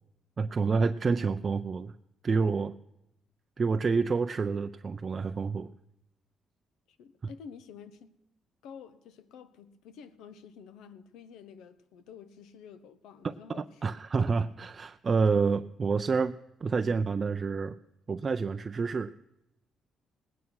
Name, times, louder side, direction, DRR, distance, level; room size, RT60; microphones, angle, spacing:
voice 1, 0.4-1.9 2.2-2.7 3.6-5.7 13.2-16.4 16.6-17.8 18.1-19.1, right 4 dB, 40° right, 0.4 m, -28 dB
voice 2, 6.9-8.1 8.6-13.7, left 7 dB, 90° left, 1.0 m, -49 dB
18.5 x 9.4 x 6.2 m
cardioid pair, 90°, 0 cm